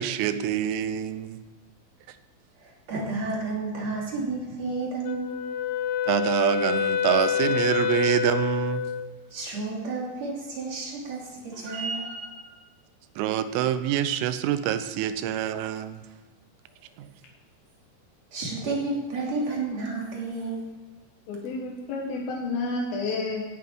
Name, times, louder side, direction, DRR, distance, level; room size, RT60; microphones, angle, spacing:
voice 1, 0.0-1.4 6.1-8.8 13.2-16.0 17.0-17.1, right 11 dB, 85° right, 11 dB, 3.4 m, -26 dB
voice 2, 2.6-5.4 9.3-12.6 18.3-20.7, right 3 dB, 40° right, -3 dB, 3.4 m, -31 dB
Wind instrument woodwind instrument, 5.0-9.1, left 8 dB, 80° left, 3.4 m, -27 dB
voice 3, 21.3-23.4, left 3 dB, 65° left, -2 dB, 2.5 m, -30 dB
17.0 x 9.5 x 4.7 m, 1.4 s
omnidirectional pair, 5.9 m